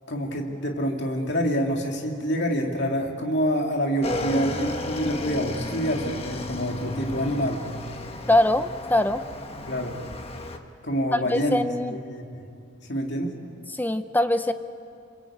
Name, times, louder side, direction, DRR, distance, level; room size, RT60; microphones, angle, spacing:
voice 1, 0.1-7.6 9.7-10.0 10.8-12.5 12.9-13.4, equal, 60° left, 1 dB, 2.5 m, -27 dB
Motorcycle / Engine, 4.0-10.6, left 1 dB, 30° left, 1.4 m, -33 dB
voice 2, 8.3-9.2 11.1-11.9 13.7-14.5, left 1 dB, 10° left, 10 dB, 0.6 m, -22 dB
27.0 x 23.5 x 8.7 m, 2.4 s
head